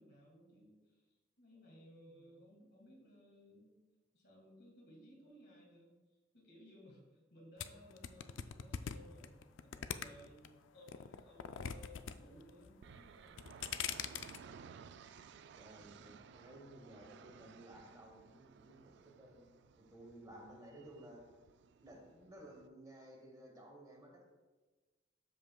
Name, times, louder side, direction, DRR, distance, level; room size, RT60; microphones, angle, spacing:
voice 1, 0.0-3.8 4.1-5.9 6.3-13.4 15.8-16.2, equal, 55° left, -1 dB, 1.8 m, -60 dB
sound 1, 7.6-10.5 10.9-12.1 12.4-12.9 13.3-14.4, left 8 dB, 80° left, 0.4 m, -42 dB
sound 2, 12.8-22.7, right 6 dB, 60° right, 0.3 m, -58 dB
voice 2, 15.5-21.2 21.8-24.3, right 1 dB, 20° right, 0 dB, 1.1 m, -56 dB
12.5 x 5.2 x 2.3 m, 1.3 s
head